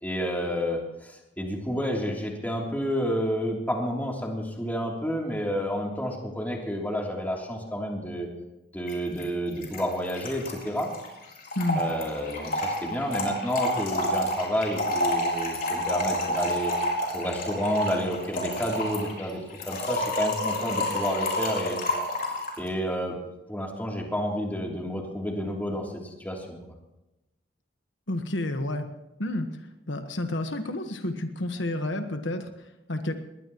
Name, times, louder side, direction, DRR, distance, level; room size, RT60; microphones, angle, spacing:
voice 1, 0.0-8.3 8.7-10.9 11.8-16.7 17.1-21.8 22.6-23.1 23.5-26.6, equal, 10° left, -1 dB, 3.1 m, -30 dB
Trickle dribble / Fill (with liquid), 8.9-9.0 9.2-9.3 9.5-22.6, left 1 dB, 50° left, 4.5 m, -29 dB
voice 2, 28.1-28.9 29.2-33.1, left 1 dB, 75° left, 6 dB, 1.4 m, -30 dB
21.5 x 19.0 x 3.1 m, 0.96 s
head